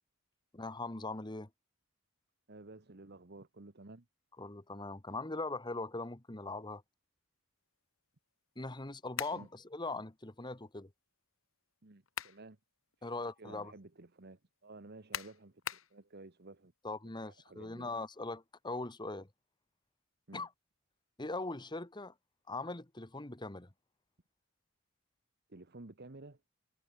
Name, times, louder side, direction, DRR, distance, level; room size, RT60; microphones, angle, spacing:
voice 1, 0.5-1.5 4.4-6.8 8.6-10.9 13.0-13.7 16.8-19.3 20.3-20.5 21.2-22.1 22.5-23.7, left 2 dB, 20° left, 1.4 m, -41 dB
voice 2, 2.5-4.0 9.3-9.5 11.8-12.6 13.0-13.1 13.4-16.7 17.0-17.9 20.3-20.5 25.5-26.4, right 2 dB, 50° right, 1.3 m, -53 dB
sound 1, 9.1-9.5 11.8-12.4 12.9-13.0 15.1-15.9, left 9 dB, 70° left, 2.0 m, -40 dB
head